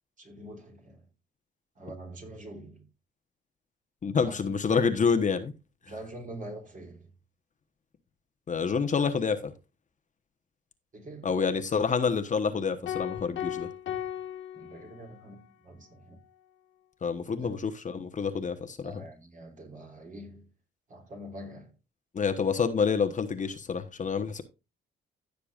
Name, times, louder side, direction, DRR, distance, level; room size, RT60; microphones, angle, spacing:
voice 1, 0.2-1.1 1.7-2.9 4.1-4.5 5.8-7.1 10.9-11.3 14.5-16.2 17.2-17.6 18.8-20.5 20.9-21.7, right 1 dB, 40° right, 3.2 m, -45 dB
voice 2, 4.0-5.5 8.5-9.5 11.2-13.7 17.0-19.0 22.1-24.4, left 5 dB, 40° left, 1.1 m, -28 dB
sound 1, 12.9-15.3, left 10 dB, 70° left, 1.7 m, -36 dB
15.5 x 6.7 x 2.4 m
cardioid pair, 90°, 20 cm